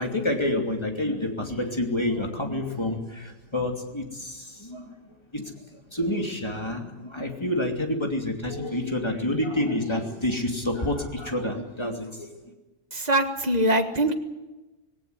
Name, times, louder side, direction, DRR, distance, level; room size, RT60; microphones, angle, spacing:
voice 1, 0.0-12.3, left 1 dB, 20° left, 3 dB, 2.9 m, -28 dB
voice 2, 12.9-14.1, right 1 dB, 30° right, 7 dB, 1.7 m, -23 dB
19.0 x 17.5 x 9.6 m, 1.1 s
omnidirectional pair, 1.4 m